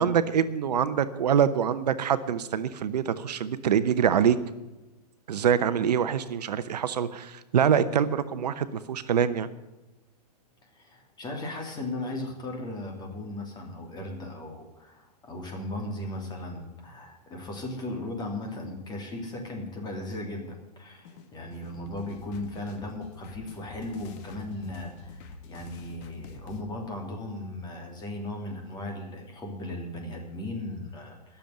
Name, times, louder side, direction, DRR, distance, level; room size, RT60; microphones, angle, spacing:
voice 1, 0.0-4.4 5.3-9.5, right 8 dB, 75° right, 13 dB, 0.9 m, -25 dB
voice 2, 10.6-31.4, left 1 dB, 20° left, 2 dB, 2.9 m, -37 dB
sound 1, 21.0-26.6, left 4 dB, 45° left, 1.5 m, -46 dB
13.5 x 7.1 x 9.2 m, 1.1 s
hypercardioid pair, 125°, 21 cm